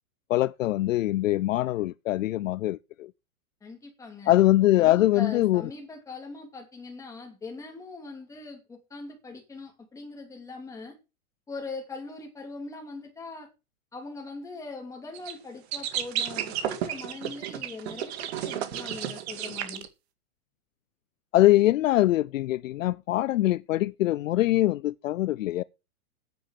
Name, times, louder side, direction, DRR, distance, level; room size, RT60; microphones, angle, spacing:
voice 1, 0.3-3.1 4.3-5.6 21.3-25.6, left 15 dB, 65° left, 0.6 m, -23 dB
voice 2, 3.6-4.3 4.8-11.0 11.5-13.5 13.9-19.9, left 3 dB, 5° left, 2.8 m, -41 dB
sound 1, 15.1-15.3 15.7-19.9, right 10 dB, 45° right, 2.0 m, -32 dB
9.4 x 8.8 x 7.5 m
supercardioid pair, 165°, 43 cm